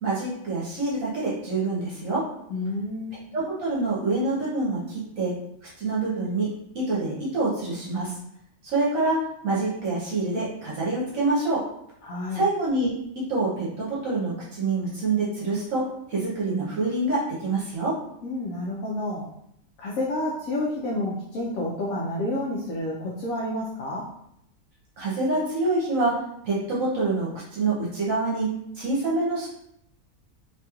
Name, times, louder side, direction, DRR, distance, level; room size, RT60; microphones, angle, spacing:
voice 1, 0.0-2.2 3.3-5.3 5.8-6.5 6.7-8.1 8.7-9.2 9.4-11.6 12.3-12.9 13.3-15.8 16.1-17.9 25.0-26.2 26.4-28.5 28.7-29.5, right 3 dB, 70° right, -6 dB, 1.1 m, -26 dB
voice 2, 2.5-3.2 12.0-12.4 18.2-19.2 19.8-24.1, left 1 dB, 75° left, -4 dB, 1.0 m, -29 dB
2.9 x 2.8 x 2.3 m, 0.76 s
omnidirectional pair, 1.5 m